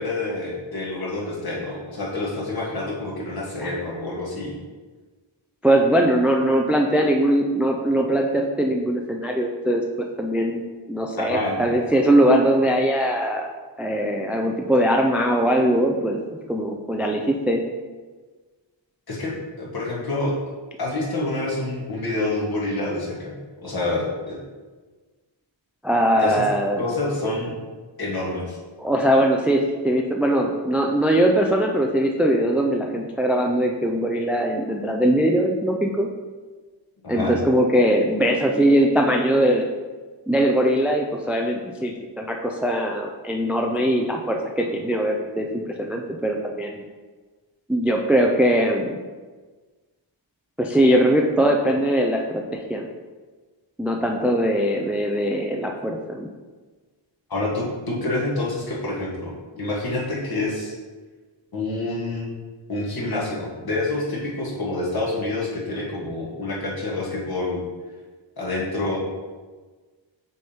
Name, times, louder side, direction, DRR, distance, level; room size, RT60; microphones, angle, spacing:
voice 1, 0.0-4.6 11.2-11.7 19.1-20.3 20.8-23.3 23.6-24.4 26.2-26.4 26.8-27.5 28.0-28.6 37.0-37.4 57.3-60.7 61.5-62.4 62.7-67.6 68.4-69.0, left 2 dB, 50° left, -5 dB, 1.7 m, -27 dB
voice 2, 5.6-9.8 10.2-13.5 13.8-16.2 16.5-17.6 25.8-26.8 28.8-36.1 37.1-39.7 40.3-46.8 47.7-49.0 50.6-52.9 53.8-56.3, right 1 dB, 5° right, 2 dB, 0.3 m, -21 dB
6.2 x 3.5 x 4.3 m, 1.4 s
wide cardioid pair, 115°, 47 cm